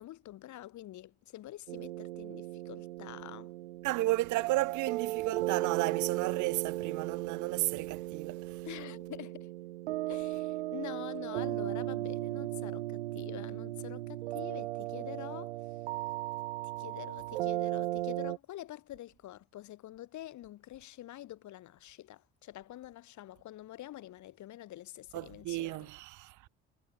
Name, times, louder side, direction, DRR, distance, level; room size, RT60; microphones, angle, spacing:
voice 1, 0.0-3.5 8.6-9.5 10.1-15.5 16.8-25.9, left 14 dB, 65° left, 5.7 m, -46 dB
sound 1, 1.7-18.4, right 17 dB, 90° right, 0.9 m, -36 dB
voice 2, 3.8-8.6 25.1-26.3, right 19 dB, 70° right, 1.2 m, -33 dB
hypercardioid pair, 55°, 31 cm